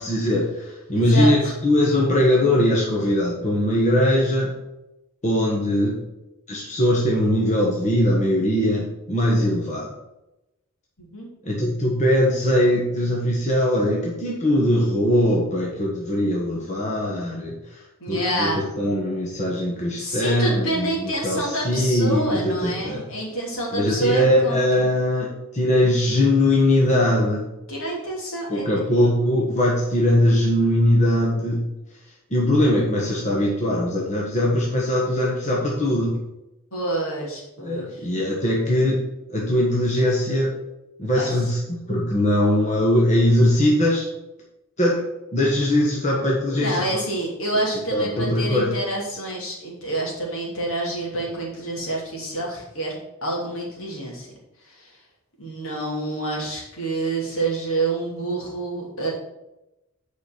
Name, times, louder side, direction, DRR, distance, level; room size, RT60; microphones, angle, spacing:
voice 1, 0.0-4.6 5.2-6.0 6.5-9.9 11.4-17.8 18.1-23.1 23.7-27.4 28.5-31.6 32.3-36.2 37.6-40.6 41.0-44.1 44.8-45.1 45.3-46.9 47.9-48.7, left 1 dB, 35° left, -3 dB, 1.4 m, -21 dB
voice 2, 0.9-1.3 11.0-11.3 18.0-18.6 20.0-24.9 27.7-28.7 36.7-37.9 41.1-41.3 46.5-54.3 54.7-55.0 55.4-59.1, right 2 dB, 65° left, -3 dB, 3.1 m, -28 dB
7.9 x 5.2 x 6.1 m, 0.94 s
head